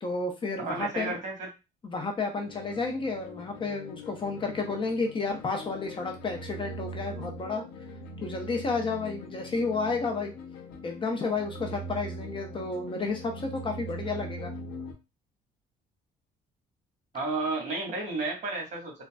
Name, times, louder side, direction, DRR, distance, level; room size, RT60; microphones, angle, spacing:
voice 1, 0.0-1.1 1.8-7.6 8.2-10.3 10.8-14.5, left 3 dB, 30° left, 3 dB, 0.7 m, -31 dB
voice 2, 0.6-1.5 17.1-19.0, right 3 dB, 45° right, 0 dB, 1.5 m, -32 dB
sound 1, 2.4-14.9, equal, 90° left, 0.8 m, -41 dB
3.8 x 2.1 x 2.2 m, 0.26 s
cardioid pair, 110°, 17 cm